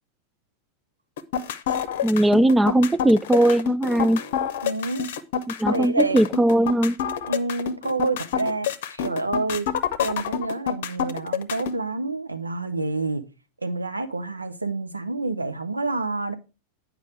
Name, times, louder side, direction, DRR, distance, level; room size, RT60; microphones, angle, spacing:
sound 1, 1.2-11.8, left 8 dB, 55° left, 0.7 m, -27 dB
voice 1, 2.0-4.2 5.5-7.0, right 1 dB, 10° right, 0.3 m, -19 dB
voice 2, 4.6-5.1 5.7-6.2 7.3-9.7 10.0-13.2 13.6-16.3, right 2 dB, 80° right, 0.8 m, -28 dB
9.6 x 5.0 x 4.8 m
figure-of-eight pair, 90°, 0 cm